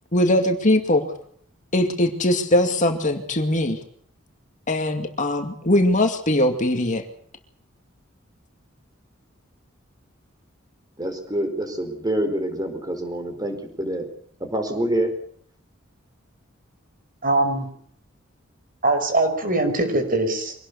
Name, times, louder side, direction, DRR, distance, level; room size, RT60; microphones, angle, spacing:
voice 1, 0.1-1.1 1.7-3.8 4.7-7.0, left 1 dB, 40° left, 5 dB, 2.3 m, -21 dB
voice 2, 11.0-14.1 14.4-15.1, right 1 dB, 20° right, 7 dB, 4.7 m, -26 dB
voice 3, 17.2-17.7 18.8-20.5, right 2 dB, 45° right, 7 dB, 5.5 m, -22 dB
25.0 x 19.0 x 7.0 m, 0.62 s
head